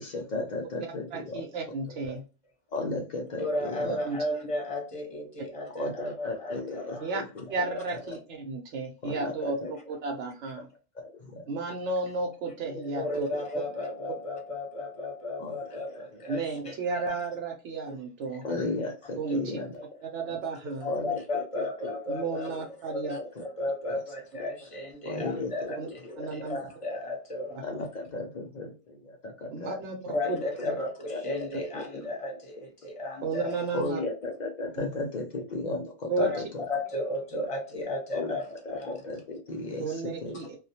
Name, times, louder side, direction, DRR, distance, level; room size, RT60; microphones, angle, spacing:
voice 1, 0.0-1.4 1.9-2.2 2.7-4.0 5.7-7.8 9.0-9.7 10.9-11.4 12.6-13.5 15.4-16.2 16.6-16.7 18.4-19.8 20.2-20.4 20.9-22.0 22.5-22.7 23.0-23.4 23.9-24.0 24.4-24.5 25.0-26.7 27.6-30.5 31.1-31.2 31.5-32.7 33.7-36.6 38.1-40.4, left 2 dB, 55° left, 0.5 m, -36 dB
voice 2, 1.1-2.2 3.8-4.2 7.0-7.2 7.5-10.7 11.5-13.3 16.3-18.4 19.2-19.4 20.1-20.9 22.1-23.2 25.8-25.9 26.2-26.6 29.5-30.4 30.6-30.8 33.2-34.0 34.8-34.9 36.1-36.3 39.8-40.6, right 3 dB, 90° right, 1.0 m, -33 dB
voice 3, 3.4-7.1 12.9-16.7 17.9-18.0 18.4-18.5 19.3-19.4 20.8-22.5 22.8-27.6 30.1-33.6 36.2-36.4 36.7-38.4 38.7-38.9, left 2 dB, 30° left, 0.9 m, -34 dB
2.3 x 2.1 x 2.7 m
omnidirectional pair, 1.2 m